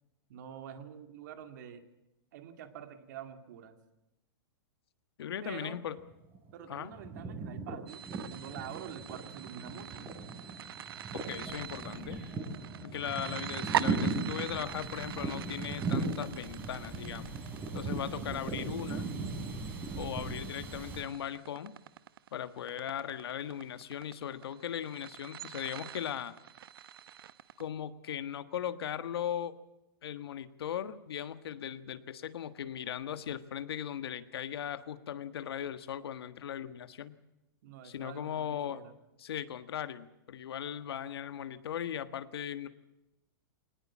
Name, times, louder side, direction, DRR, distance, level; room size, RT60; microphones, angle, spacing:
voice 1, 0.3-1.8 2.3-3.8 5.4-5.8 6.5-8.0 8.3-10.1 37.6-38.9, right 9 dB, 45° right, 7 dB, 2.4 m, -46 dB
voice 2, 5.2-6.0 6.7-6.9 11.1-12.2 12.8-17.3 17.7-19.0 20.0-21.7 22.3-26.3 27.6-29.5 30.0-37.2 37.8-38.8 39.2-42.7, left 9 dB, 80° left, 11 dB, 1.5 m, -38 dB
sound 1, 5.9-6.5 6.8-21.0, right 3 dB, 15° right, 3.9 m, -38 dB
sound 2, 7.9-27.6, right 10 dB, 65° right, 1.0 m, -43 dB
22.5 x 19.0 x 7.4 m, 0.95 s
supercardioid pair, 170°, 13 cm